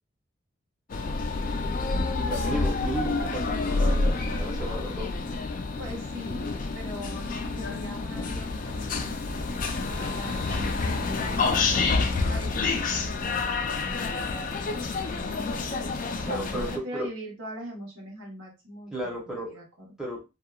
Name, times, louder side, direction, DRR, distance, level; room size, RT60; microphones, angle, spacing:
sound 1, 0.9-16.8, left 3 dB, 40° left, 0.3 m, -28 dB
voice 1, 2.3-5.1 16.2-16.7 16.9-17.1 18.9-19.6 20.0-20.2, right 1 dB, 5° right, -4 dB, 0.8 m, -34 dB
voice 2, 5.8-9.5 10.0-11.7 12.3-12.8 15.0-15.7 16.2-19.9, equal, 75° right, -3 dB, 1.2 m, -41 dB
2.7 x 2.2 x 2.3 m, 0.27 s
head